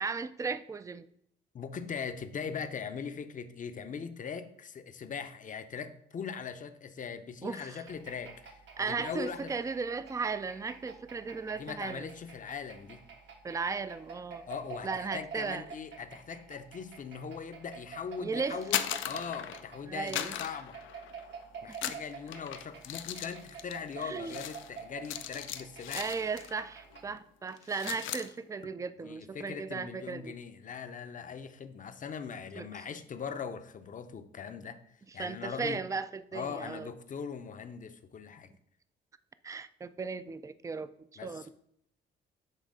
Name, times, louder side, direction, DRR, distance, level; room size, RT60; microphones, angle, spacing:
voice 1, 0.0-1.1 7.4-7.8 8.8-12.0 13.4-14.5 14.8-15.7 18.2-18.6 19.9-20.4 21.7-21.9 24.0-24.4 25.9-30.3 32.6-32.8 35.2-36.9 39.4-40.9 41.2-41.5, right 4 dB, 15° right, 13 dB, 0.4 m, -36 dB
voice 2, 1.5-9.5 11.6-13.0 14.5-20.8 21.6-26.0 29.0-34.8 35.1-35.8 36.3-38.5 41.2-41.5, left 6 dB, 40° left, 10 dB, 0.7 m, -40 dB
sound 1, 7.9-27.2, right 6 dB, 70° right, 1.2 m, -49 dB
sound 2, 18.5-19.7 20.1-21.3 21.7-26.6 26.9-27.2 27.5-28.3, left 11 dB, 80° left, 0.5 m, -38 dB
7.5 x 3.1 x 5.0 m, 0.71 s
cardioid pair, 90°, 20 cm